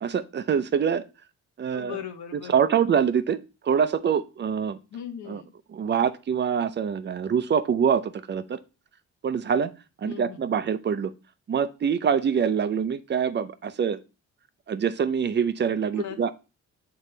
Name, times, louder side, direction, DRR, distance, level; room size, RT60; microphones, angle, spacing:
voice 1, 0.0-1.1 1.6-2.0 2.5-4.8 5.3-5.4 5.7-8.6 9.2-9.7 10.0-11.1 11.5-14.0 14.7-16.3, right 7 dB, 35° right, 0.5 m, -25 dB
voice 2, 1.7-2.8 4.9-5.5 10.0-10.5 15.9-16.3, left 9 dB, 65° left, 1.0 m, -39 dB
7.3 x 3.9 x 3.3 m
cardioid pair, 90°, 30 cm